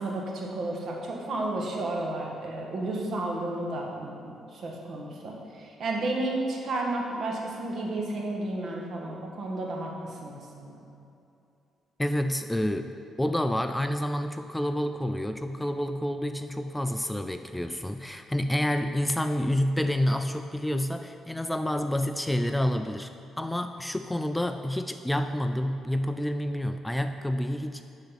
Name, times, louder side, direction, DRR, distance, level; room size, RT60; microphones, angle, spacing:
voice 1, 0.0-10.8, right 2 dB, 55° right, -1 dB, 1.5 m, -32 dB
voice 2, 12.0-12.9 13.2-27.8, left 1 dB, 5° left, 8 dB, 0.3 m, -28 dB
10.5 x 4.1 x 5.7 m, 2.7 s
cardioid pair, 90°, 0 cm